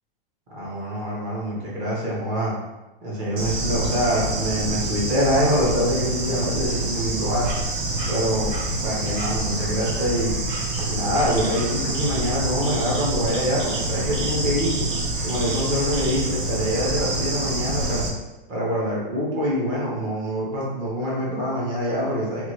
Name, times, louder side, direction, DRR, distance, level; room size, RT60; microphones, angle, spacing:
voice 1, 0.5-2.5 3.0-7.6 8.1-10.3 10.8-14.9 15.2-18.1 18.5-22.5, equal, 15° right, -5 dB, 0.5 m, -25 dB
Bird / Insect, 3.4-18.1, right 2 dB, 60° right, 0.8 m, -27 dB
2.8 x 2.5 x 3.0 m, 1.1 s
hypercardioid pair, 165°, 29 cm